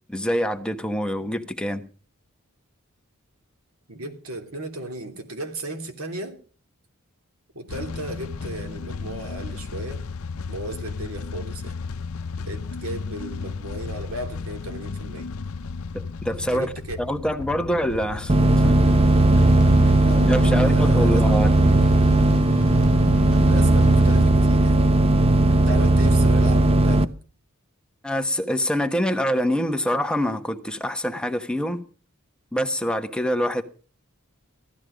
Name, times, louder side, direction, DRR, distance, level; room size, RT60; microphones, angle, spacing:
voice 1, 0.1-1.8 15.9-16.7 17.0-19.0 20.3-21.5 28.0-31.8 32.5-33.6, equal, 5° left, 1.2 m, -25 dB
voice 2, 3.9-6.4 7.5-10.0 10.5-11.7 12.5-15.3 16.5-17.0 19.7-19.8 20.0-21.9 23.4-24.8 25.5-27.1, right 1 dB, 75° right, 3.0 m, -35 dB
sound 1, 7.7-24.3, left 4 dB, 70° left, 0.6 m, -34 dB
sound 2, 18.3-27.1, right 2 dB, 25° right, 0.6 m, -17 dB
15.5 x 13.0 x 5.1 m
head